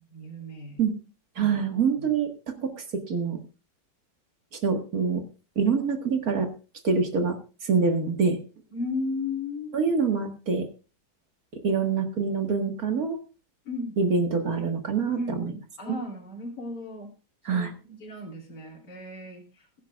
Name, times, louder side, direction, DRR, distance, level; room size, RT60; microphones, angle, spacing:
voice 1, 0.1-0.8 1.4-1.6 2.0-2.1 8.7-10.0 13.7-14.0 15.1-17.1 17.5-19.4, left 3 dB, 60° left, -4 dB, 3.5 m, -35 dB
voice 2, 1.4-2.3 2.6-3.4 4.6-5.2 5.6-6.5 6.8-7.4 7.6-8.4 9.7-10.6 11.6-13.2 14.0-15.5 15.9-16.0 17.5-17.7, right 5 dB, 55° right, 5 dB, 2.1 m, -25 dB
21.5 x 10.5 x 2.4 m, 0.33 s
omnidirectional pair, 2.0 m